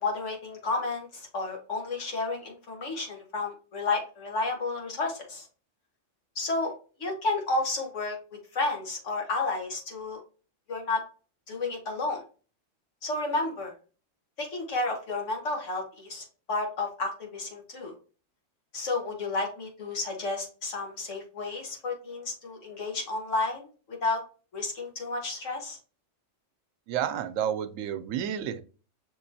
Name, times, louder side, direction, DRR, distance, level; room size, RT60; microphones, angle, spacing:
voice 1, 0.0-5.5 6.4-6.7 7.0-8.2 8.5-10.2 10.7-11.0 11.5-12.2 13.0-13.7 14.4-17.9 18.7-24.2 24.5-25.8, left 3 dB, 70° left, 1 dB, 1.7 m, -31 dB
voice 2, 26.9-28.6, right 9 dB, 85° right, 11 dB, 1.0 m, -30 dB
6.1 x 3.0 x 2.7 m, 0.36 s
omnidirectional pair, 1.3 m